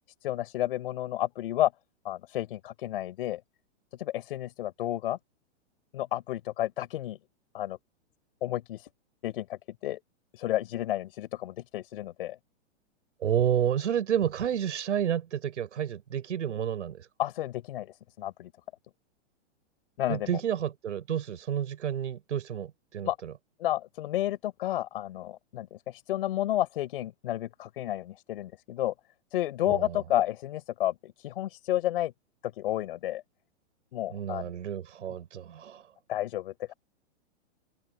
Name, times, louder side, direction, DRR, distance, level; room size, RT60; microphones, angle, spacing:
voice 1, 0.2-1.7 2.0-3.4 3.9-5.2 5.9-7.2 7.5-7.8 8.4-8.9 9.2-10.0 10.3-12.4 17.2-18.5 20.0-20.4 23.0-23.2 23.6-28.9 29.3-32.1 32.4-33.2 33.9-34.5 36.1-36.7, left 13 dB, 50° left, 6.0 m, -31 dB
voice 2, 13.2-17.1 20.1-23.3 29.7-30.0 34.1-35.8, right 9 dB, 80° right, 8.0 m, -30 dB
hypercardioid pair, 170°, 35 cm